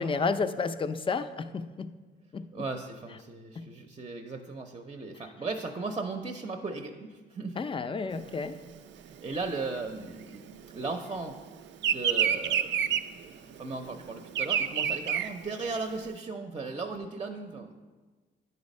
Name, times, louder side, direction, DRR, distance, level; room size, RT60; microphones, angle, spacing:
voice 1, 0.0-1.9 2.3-2.5 3.6-3.7 7.6-8.6, left 4 dB, 25° left, 10 dB, 0.5 m, -31 dB
voice 2, 2.5-7.6 9.1-11.4 11.8-12.9 13.4-17.8, right 3 dB, 25° right, 5 dB, 0.6 m, -37 dB
Bird vocalization bird call bird song, 8.2-11.1 11.4-16.1, right 8 dB, 65° right, 0.4 m, -29 dB
9.6 x 4.1 x 5.3 m, 1.3 s
cardioid pair, 90°, 20 cm